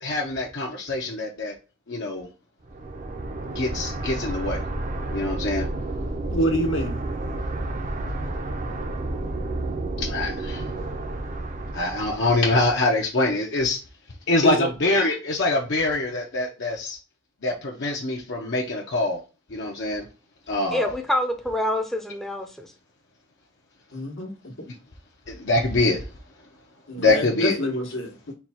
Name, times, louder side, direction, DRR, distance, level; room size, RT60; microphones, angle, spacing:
voice 1, 0.0-1.5 1.9-2.3 3.5-4.6 5.1-5.7 10.0-10.6 11.7-13.8 14.3-17.0 17.4-19.2 19.5-20.0 20.5-20.9 25.3-26.0 27.0-27.6, left 2 dB, 65° left, 0.8 m, -24 dB
sound 1, 2.7-12.5, right 2 dB, 40° right, 0.6 m, -31 dB
voice 2, 6.3-7.0 14.4-14.7 23.9-24.7 26.9-28.3, equal, 85° left, 1.3 m, -27 dB
voice 3, 20.7-22.7, left 1 dB, ahead, 0.6 m, -26 dB
4.6 x 2.3 x 4.2 m
head